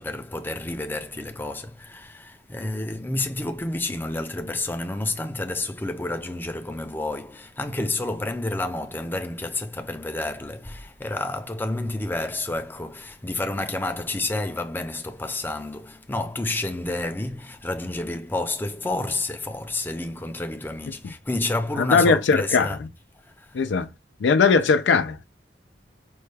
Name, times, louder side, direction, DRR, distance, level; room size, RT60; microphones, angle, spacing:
voice 1, 0.0-22.8 23.2-23.6, left 2 dB, 10° left, 0.5 m, -30 dB
voice 2, 21.9-22.7 23.5-23.9 24.2-25.2, left 5 dB, 85° left, 0.4 m, -19 dB
5.3 x 2.3 x 3.2 m
head